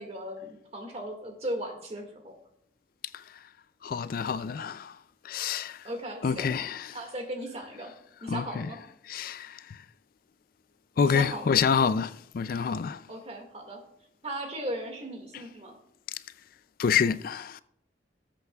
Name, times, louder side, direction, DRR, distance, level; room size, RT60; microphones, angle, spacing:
voice 1, 0.0-2.4 5.8-6.5 6.9-7.9 8.2-8.8 11.0-11.7 13.1-13.8 14.2-15.8, right 1 dB, 35° right, 1.9 m, -37 dB
voice 2, 3.8-5.0 5.2-5.9 6.2-7.0 8.3-8.7 9.1-9.8 11.0-13.0 16.1-16.2 16.8-17.6, left 6 dB, 55° left, 0.3 m, -27 dB
19.0 x 8.0 x 2.3 m
head